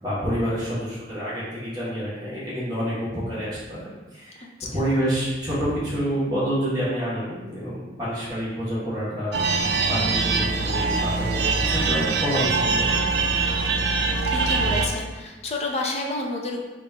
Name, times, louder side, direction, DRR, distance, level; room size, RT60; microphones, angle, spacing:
voice 1, 0.0-4.5 4.7-9.6 9.9-13.0, equal, 20° right, -9 dB, 1.3 m, -28 dB
sound 1, 9.3-14.9, right 4 dB, 60° right, 0.4 m, -23 dB
voice 2, 14.3-16.6, left 2 dB, 35° left, 0 dB, 0.5 m, -30 dB
3.7 x 2.5 x 4.5 m, 1.2 s
head